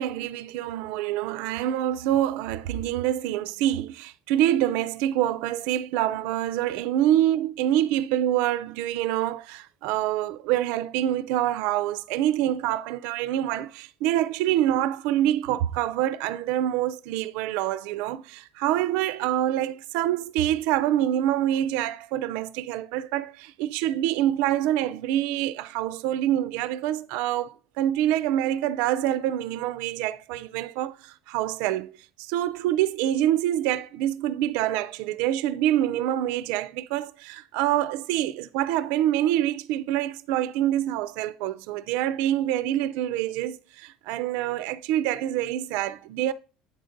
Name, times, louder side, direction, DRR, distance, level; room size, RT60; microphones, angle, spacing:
voice 1, 0.0-31.9 32.2-46.3, right 12 dB, 80° right, 0.4 m, -26 dB
9.2 x 3.9 x 5.0 m
cardioid pair, 130°, 2 cm